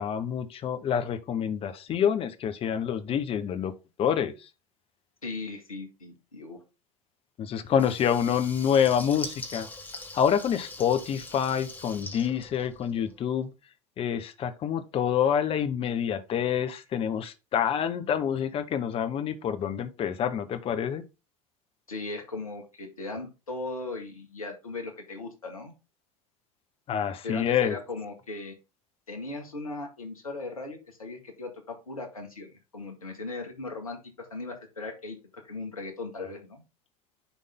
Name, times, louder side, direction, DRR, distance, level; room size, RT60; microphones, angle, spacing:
voice 1, 0.0-3.7 4.0-4.3 7.4-9.7 10.1-13.5 14.0-21.0 26.9-27.8, left 8 dB, 30° left, 1.0 m, -27 dB
voice 2, 5.2-6.6 7.7-7.8 21.9-25.7 27.2-28.6 29.1-36.6, left 3 dB, 80° left, 1.9 m, -38 dB
Water tap faucet / Liquid, 7.7-13.2, left 2 dB, 10° left, 1.6 m, -42 dB
10.0 x 3.7 x 3.7 m
figure-of-eight pair, 80°, 18 cm